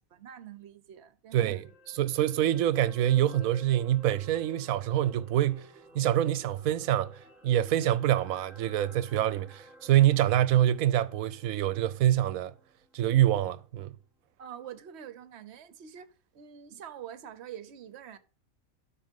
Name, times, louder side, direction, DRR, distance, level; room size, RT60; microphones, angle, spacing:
voice 1, 0.1-1.7 14.4-18.2, right 9 dB, 55° right, 1.0 m, -46 dB
voice 2, 1.3-5.7 5.9-12.5 12.9-13.9, right 12 dB, 80° right, 1.0 m, -26 dB
sound 1, 1.4-13.7 14.0-14.2, right 1 dB, ahead, 1.6 m, -54 dB
12.5 x 4.4 x 5.3 m
omnidirectional pair, 1.5 m